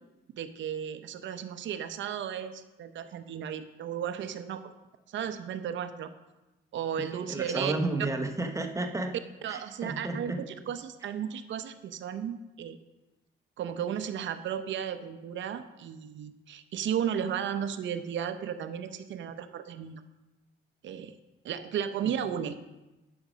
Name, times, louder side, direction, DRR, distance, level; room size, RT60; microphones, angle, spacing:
voice 1, 0.4-4.7 5.1-6.1 6.7-7.7 9.4-12.8 13.6-20.0 20.8-21.1 21.4-22.6, right 8 dB, 70° right, 10 dB, 0.7 m, -34 dB
voice 2, 7.0-9.2 9.5-10.4 22.0-22.2, right 2 dB, 15° right, 5 dB, 1.0 m, -32 dB
9.1 x 6.2 x 5.1 m, 1.0 s
cardioid pair, 90°, 20 cm